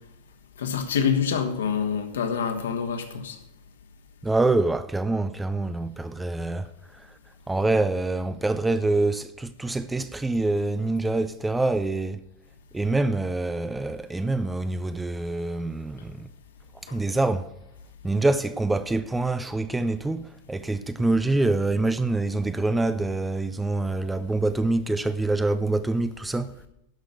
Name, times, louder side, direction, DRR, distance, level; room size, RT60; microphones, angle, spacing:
voice 1, 0.6-3.4 16.9-17.0, left 7 dB, 65° left, 1.6 m, -26 dB
voice 2, 4.2-6.7 7.0-7.1 7.5-12.2 12.7-16.3 16.9-17.5 18.0-26.5, right 2 dB, 10° right, 0.5 m, -25 dB
11.0 x 6.5 x 8.1 m
figure-of-eight pair, 90°, 0 cm